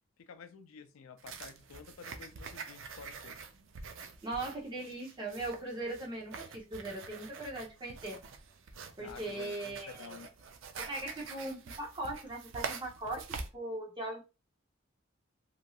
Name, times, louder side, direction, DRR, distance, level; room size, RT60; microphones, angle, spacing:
voice 1, 0.2-3.4 9.0-10.3, left 5 dB, 85° left, 0.4 m, -51 dB
sound 1, 1.2-13.5, right 5 dB, 70° right, 0.4 m, -46 dB
voice 2, 3.9-8.2 9.0-10.1 10.8-13.2 13.5-14.2, right 2 dB, 20° right, 0.8 m, -39 dB
3.0 x 2.6 x 2.3 m
head